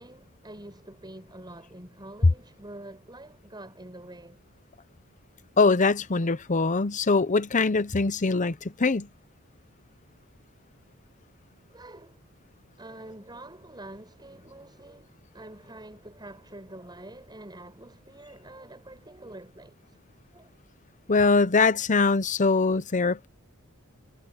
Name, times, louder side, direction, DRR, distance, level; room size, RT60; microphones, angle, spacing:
voice 1, 0.0-4.4 11.7-12.2 12.8-20.0 20.3-20.5, right 1 dB, 20° right, 7.9 m, -46 dB
voice 2, 5.6-9.1 21.1-23.3, left 4 dB, 35° left, 0.8 m, -23 dB
head